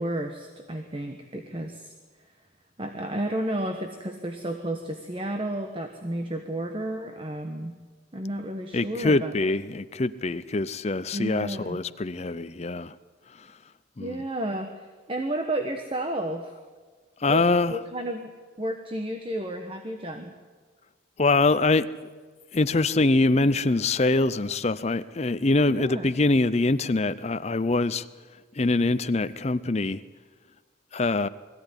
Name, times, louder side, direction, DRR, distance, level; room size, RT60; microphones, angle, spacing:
voice 1, 0.0-1.9 2.8-7.7 8.1-9.4 11.1-11.8 14.0-16.5 17.3-18.3 18.6-20.4 25.7-26.1, right 1 dB, 25° right, 1.2 m, -32 dB
voice 2, 8.7-13.0 13.4-13.5 14.0-14.2 17.2-17.8 21.2-21.9 22.5-28.1 28.6-30.0 30.9-31.3, left 2 dB, 30° left, 0.6 m, -24 dB
21.5 x 15.0 x 9.9 m
head